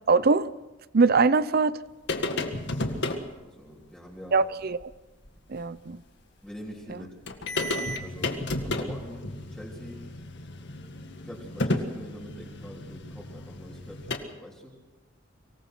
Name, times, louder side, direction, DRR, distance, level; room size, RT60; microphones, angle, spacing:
voice 1, 0.1-0.5 0.9-1.8 4.3-4.9 5.5-6.0, right 4 dB, 50° right, 16 dB, 0.7 m, -22 dB
sound 1, 2.1-3.2 4.8-4.9 5.2-5.3 6.9-7.0 7.3-14.2, left 2 dB, 60° left, 1.9 m, -32 dB
voice 2, 2.8-4.4 6.4-7.2 8.0-10.0 11.1-14.8, equal, 5° left, -5 dB, 3.5 m, -44 dB
24.5 x 19.0 x 6.1 m, 1.1 s
head